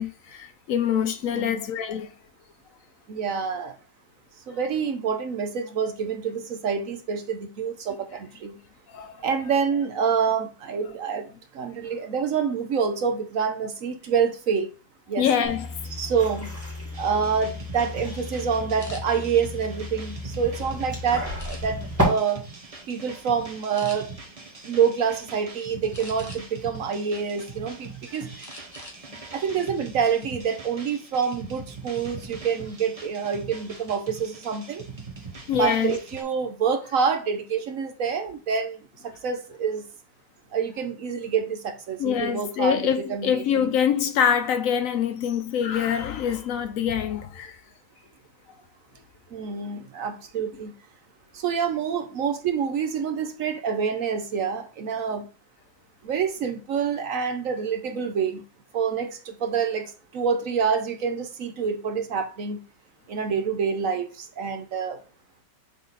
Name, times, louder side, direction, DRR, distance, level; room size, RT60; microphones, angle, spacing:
voice 1, 0.0-2.1 8.9-9.2 15.2-15.8 35.5-36.0 42.0-47.6, left 8 dB, 70° left, 0.8 m, -25 dB
voice 2, 1.3-1.7 3.1-3.7 4.5-8.6 9.2-11.3 11.5-14.7 15.1-15.3 16.0-16.5 17.0-22.4 22.9-24.1 24.6-28.5 29.3-34.8 35.6-39.8 40.5-43.7 49.3-50.7 51.3-55.3 56.0-58.4 58.7-62.6 63.1-65.0, right 6 dB, 65° right, 0.9 m, -27 dB
sound 1, 15.4-22.0, left 1 dB, 10° right, 2.1 m, -33 dB
sound 2, 16.9-36.2, right 4 dB, 30° right, 0.8 m, -42 dB
sound 3, 18.8-19.0 19.7-20.6 21.4-22.0 22.5-22.7 23.1-23.2 23.7-24.0 25.9-26.6 27.1-27.9 28.4-29.0 29.3-29.5 29.9-30.3, left 1 dB, 15° left, 0.8 m, -44 dB
6.4 x 3.8 x 3.9 m
omnidirectional pair, 1.9 m